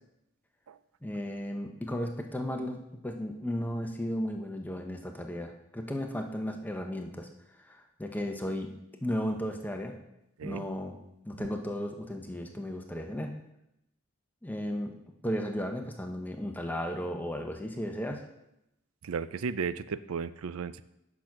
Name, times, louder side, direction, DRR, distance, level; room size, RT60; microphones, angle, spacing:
voice 1, 1.0-7.3 7.6-8.7 9.0-9.9 10.4-10.9 11.3-13.3 14.4-14.9 15.2-18.2, equal, 10° left, 3 dB, 0.8 m, -35 dB
voice 2, 19.0-20.8, right 5 dB, 85° right, 15 dB, 0.4 m, -34 dB
8.9 x 6.0 x 5.9 m, 0.84 s
head